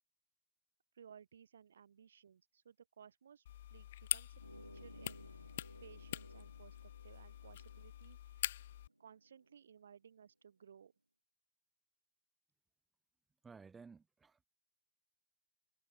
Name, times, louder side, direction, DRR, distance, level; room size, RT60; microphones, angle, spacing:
voice 1, 0.9-5.5 5.8-8.6 9.0-10.9, right 7 dB, 70° right, 3.7 m, -60 dB
sound 1, 3.5-8.9, left 12 dB, 60° left, 2.0 m, -44 dB
sound 2, 4.3-9.6, right 1 dB, 85° right, 1.7 m, -60 dB
voice 2, 13.4-14.5, right 5 dB, 15° right, 4.8 m, -56 dB
figure-of-eight pair, 90°, 0 cm